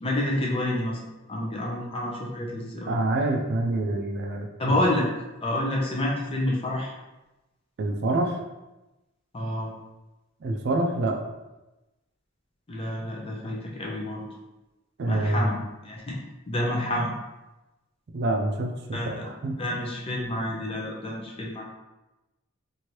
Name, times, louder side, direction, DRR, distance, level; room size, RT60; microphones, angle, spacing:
voice 1, 0.0-1.0 1.3-2.9 4.6-5.1 5.4-6.9 9.3-9.7 12.7-14.2 15.0-15.6 15.8-16.1 16.5-17.1 18.9-19.3 19.6-21.6, left 1 dB, 25° left, -2 dB, 0.6 m, -28 dB
voice 2, 2.9-4.8 7.8-8.4 10.4-11.2 15.0-15.5 18.1-19.6, right 2 dB, 50° right, 3 dB, 0.4 m, -26 dB
2.9 x 2.6 x 3.0 m, 1.0 s
head